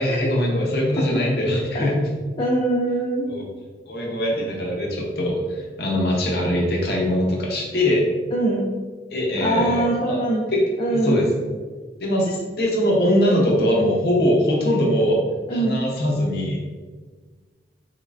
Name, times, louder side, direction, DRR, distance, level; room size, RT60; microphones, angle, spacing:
voice 1, 0.0-2.0 3.3-3.5 3.9-8.0 9.1-10.2 10.5-10.6 10.9-11.3 12.0-15.2 15.5-16.6, left 1 dB, 60° left, -2 dB, 0.7 m, -22 dB
voice 2, 2.4-3.3 8.3-8.7 9.4-10.4 10.8-11.2 15.5-15.8, right 1 dB, 25° left, -4 dB, 0.4 m, -23 dB
3.6 x 3.1 x 2.4 m, 1.4 s
head